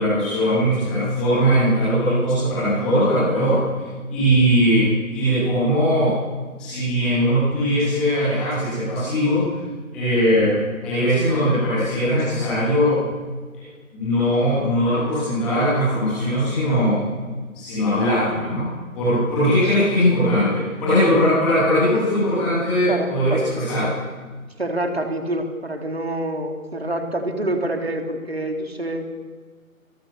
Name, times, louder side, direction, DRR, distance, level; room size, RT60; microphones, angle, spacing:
voice 1, 0.0-3.6 4.1-4.9 5.1-6.1 6.6-9.4 9.9-10.6 10.8-13.0 13.5-13.6 13.9-17.0 17.5-18.7 18.9-24.0, equal, ahead, -12 dB, 3.0 m, -20 dB
voice 2, 22.9-23.7 24.6-29.1, right 1 dB, 45° right, 4 dB, 3.8 m, -27 dB
25.0 x 22.5 x 7.0 m, 1.4 s
figure-of-eight pair, 170°, 43 cm